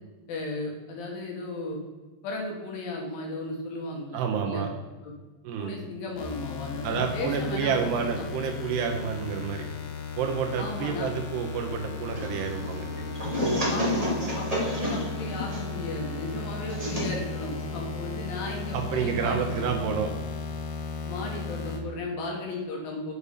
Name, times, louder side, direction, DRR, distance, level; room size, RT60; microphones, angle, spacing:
voice 1, 0.3-1.8 2.2-4.6 5.0-5.1 5.6-7.7 8.2-8.3 10.5-11.1 13.7-19.7 21.1-23.1, left 2 dB, 65° left, 0 dB, 2.8 m, -35 dB
voice 2, 4.1-4.7 5.4-5.7 6.8-9.7 10.2-12.9 18.7-20.1, right 6 dB, 75° right, 3 dB, 3.0 m, -29 dB
sound 1, 6.2-21.8, left 4 dB, 85° left, 3.4 m, -36 dB
sound 2, 12.1-18.8, equal, 15° right, 1.5 m, -32 dB
7.0 x 6.6 x 5.4 m, 1.2 s
omnidirectional pair, 5.0 m